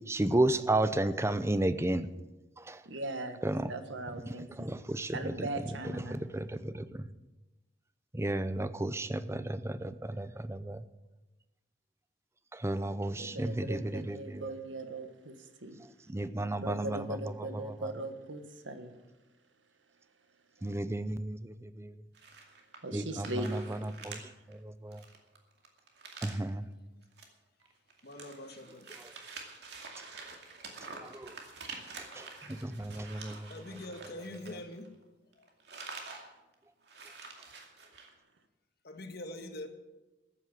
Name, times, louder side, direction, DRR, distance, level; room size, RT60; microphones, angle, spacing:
voice 1, 0.1-2.1 2.6-2.9 3.4-3.7 4.3-7.1 8.1-10.8 12.5-14.5 15.8-18.0 20.6-22.0 22.9-25.0 26.2-26.7 28.9-29.1 30.8-31.4 32.0-33.8 34.5-34.6, right 1 dB, 15° right, 13 dB, 0.6 m, -34 dB
voice 2, 2.8-3.4 3.7-4.7 5.1-6.2 13.2-15.3 15.6-15.8 16.6-18.9 22.8-23.5, right 2 dB, 90° right, 8 dB, 1.5 m, -39 dB
sound 1, 22.1-22.9 23.2-24.2 24.5-24.6 24.9-26.5 27.0-27.2 27.6-35.0 35.3-36.3 36.5-36.6 36.8-38.1, right 4 dB, 65° right, 2.4 m, -47 dB
voice 3, 28.0-29.0 33.5-34.9 35.4-35.5 38.8-39.7, left 1 dB, 55° left, 6 dB, 1.5 m, -44 dB
14.5 x 8.7 x 7.6 m, 1.1 s
head